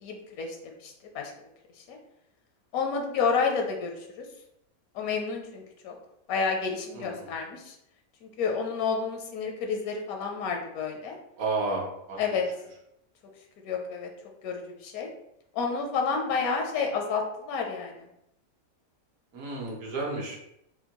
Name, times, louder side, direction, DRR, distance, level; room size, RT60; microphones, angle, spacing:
voice 1, 0.0-1.3 1.9-2.0 2.7-4.2 4.9-5.9 6.3-7.7 8.2-11.2 12.2-12.4 13.6-14.1 14.4-15.1 15.5-17.9, left 5 dB, 80° left, 3 dB, 1.0 m, -30 dB
voice 2, 6.9-7.2 11.4-12.2 19.3-20.4, right 3 dB, 75° right, -2 dB, 1.4 m, -32 dB
4.3 x 2.2 x 2.8 m, 0.80 s
omnidirectional pair, 1.5 m